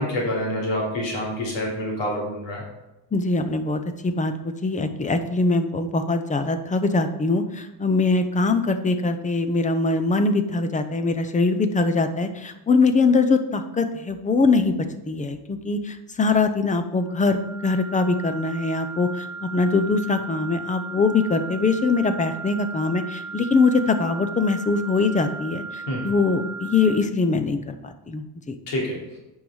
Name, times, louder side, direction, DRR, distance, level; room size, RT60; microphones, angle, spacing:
voice 1, 0.0-2.6 25.9-26.0 28.7-29.0, left 1 dB, 70° left, -3 dB, 3.1 m, -27 dB
voice 2, 3.1-14.7 15.1-28.6, left 3 dB, 15° left, 9 dB, 0.6 m, -22 dB
sound 1, 17.0-27.0, right 4 dB, 45° left, 1.2 m, -36 dB
9.0 x 5.6 x 4.9 m, 0.97 s
cardioid pair, 135°, 46 cm